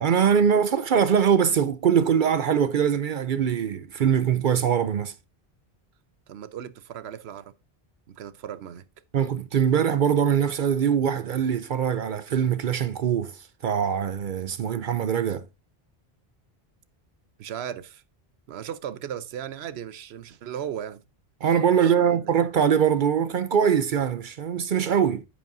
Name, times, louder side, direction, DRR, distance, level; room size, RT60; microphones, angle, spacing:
voice 1, 0.0-5.1 9.1-15.5 21.4-25.3, right 8 dB, 60° right, 0.6 m, -22 dB
voice 2, 6.3-7.5 8.1-8.9 17.4-18.0 18.5-21.0 21.8-22.3, right 9 dB, 80° right, 0.9 m, -36 dB
9.9 x 8.1 x 2.6 m
omnidirectional pair, 1.1 m